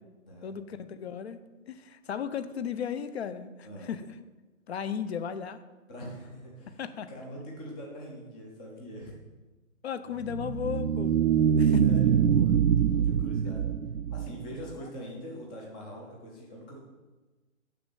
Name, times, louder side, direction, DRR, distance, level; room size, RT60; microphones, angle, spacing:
voice 1, 0.4-1.4 1.7-4.1 4.7-5.6 6.8-7.1 9.8-11.2 11.6-11.8, left 8 dB, 50° left, 12 dB, 0.8 m, -35 dB
voice 2, 5.9-6.8 7.1-9.1 11.6-12.6 12.8-13.7 14.1-16.8, equal, 5° left, -1 dB, 0.5 m, -43 dB
sound 1, 10.2-14.7, right 8 dB, 75° right, 0.6 m, -24 dB
6.8 x 6.5 x 7.7 m, 1.2 s
hypercardioid pair, 145°, 41 cm